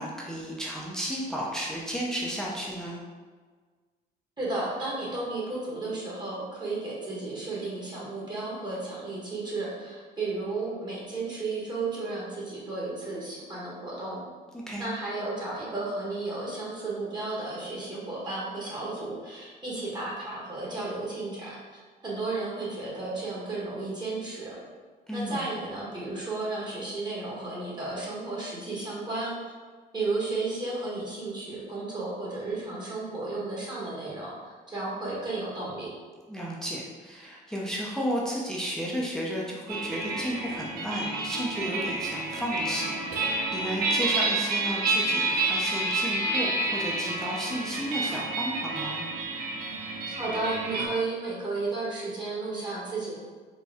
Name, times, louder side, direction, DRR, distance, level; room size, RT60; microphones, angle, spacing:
voice 1, 0.0-3.0 14.5-14.9 25.1-25.5 36.3-49.1, equal, 5° left, -4 dB, 0.6 m, -33 dB
voice 2, 4.4-14.2 14.8-24.6 25.1-29.5 29.9-35.9 50.1-53.1, right 3 dB, 25° right, -6 dB, 1.2 m, -33 dB
sound 1, 39.7-50.9, right 2 dB, 60° right, 0.7 m, -29 dB
4.2 x 2.2 x 3.5 m, 1.5 s
cardioid pair, 110°, 17 cm